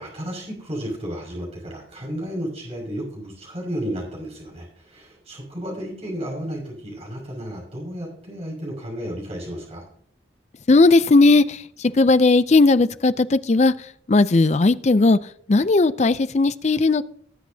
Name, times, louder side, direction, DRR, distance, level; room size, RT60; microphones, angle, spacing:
voice 1, 0.0-9.8, equal, 35° right, -2 dB, 5.9 m, -33 dB
voice 2, 10.7-17.0, left 3 dB, 35° left, 14 dB, 0.5 m, -17 dB
19.5 x 8.1 x 2.8 m, 0.65 s
head